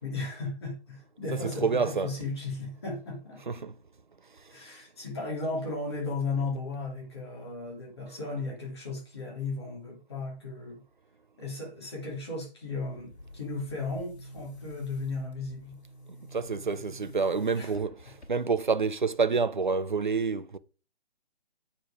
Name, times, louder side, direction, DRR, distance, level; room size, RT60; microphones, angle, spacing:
voice 1, 0.0-3.4 4.5-10.8 11.4-15.8 17.5-17.7, left 3 dB, 25° left, 2.5 m, -35 dB
voice 2, 1.6-2.1 3.5-3.7 16.3-18.0 18.3-20.6, right 5 dB, 45° right, 0.6 m, -27 dB
Boom, 12.9-18.7, right 1 dB, 70° left, 2.3 m, -48 dB
8.8 x 4.6 x 4.9 m
hypercardioid pair, 180°, 34 cm